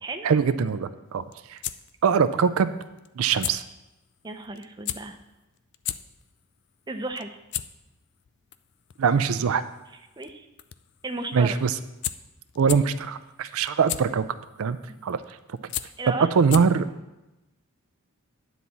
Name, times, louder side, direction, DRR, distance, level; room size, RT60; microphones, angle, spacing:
voice 1, 0.2-1.2 1.5-1.6 2.0-2.8 3.2-3.6 9.0-9.6 11.3-11.8 12.6-14.3 14.6-14.8 15.0-15.4 16.4-16.9, right 6 dB, 75° right, 11 dB, 0.4 m, -22 dB
sound 1, 1.1-16.9, left 12 dB, 50° left, 0.3 m, -38 dB
voice 2, 4.2-5.2 6.9-7.4 10.2-10.5 11.0-11.6 13.4-13.5 14.9-15.0 16.0-16.3, right 2 dB, 20° right, 5 dB, 0.5 m, -34 dB
9.5 x 4.1 x 7.2 m, 0.98 s
head